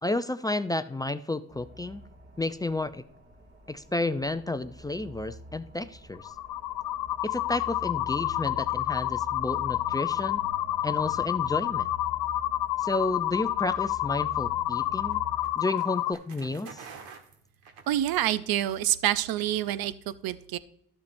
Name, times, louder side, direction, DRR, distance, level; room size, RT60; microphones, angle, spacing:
voice 1, 0.0-2.0 2.4-3.0 3.7-6.3 7.2-10.4 10.8-11.9 12.8-15.2 15.6-16.8, left 2 dB, 10° left, 11 dB, 0.3 m, -31 dB
sound 1, 1.5-15.5, left 2 dB, 35° right, 2.2 m, -46 dB
sound 2, 6.1-16.1, left 15 dB, 70° left, 0.5 m, -29 dB
sound 3, 14.1-18.5, right 5 dB, 85° right, 1.5 m, -49 dB
voice 2, 17.9-20.6, right 13 dB, 65° right, 15 dB, 0.6 m, -27 dB
13.0 x 7.1 x 2.6 m, 0.71 s
cardioid pair, 95°, 38 cm